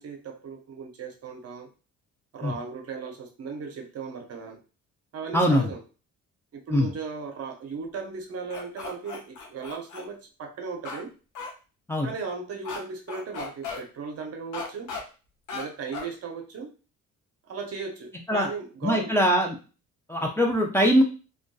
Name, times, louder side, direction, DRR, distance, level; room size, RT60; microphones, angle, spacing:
voice 1, 0.0-1.7 2.3-4.6 5.1-5.8 6.5-11.1 12.0-14.9 15.5-16.7 17.5-19.1, right 5 dB, 55° right, 3 dB, 0.7 m, -36 dB
voice 2, 5.3-5.7 6.7-6.9 11.9-12.1 18.3-18.5 18.8-19.6 20.1-21.0, equal, 10° left, 0 dB, 0.5 m, -22 dB
sound 1, 8.5-10.0 10.8-11.0 11.3-11.5 12.6-12.8 13.1-13.8 14.5-15.0 15.5-15.6 15.9-16.1, left 4 dB, 85° left, 0.7 m, -36 dB
2.5 x 2.3 x 2.3 m, 0.34 s
cardioid pair, 90°, 30 cm